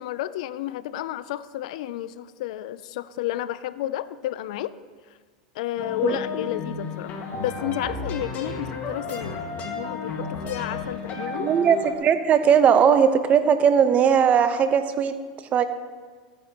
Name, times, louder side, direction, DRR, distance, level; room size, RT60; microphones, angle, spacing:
voice 1, 0.0-4.7 5.5-11.5, left 13 dB, 70° left, 16 dB, 0.4 m, -31 dB
sound 1, 5.8-11.9, left 3 dB, 40° left, 1.8 m, -33 dB
voice 2, 11.4-15.1 15.5-15.6, right 7 dB, 35° right, 9 dB, 0.9 m, -19 dB
15.0 x 9.3 x 3.0 m, 1.5 s
hypercardioid pair, 100°, 4 cm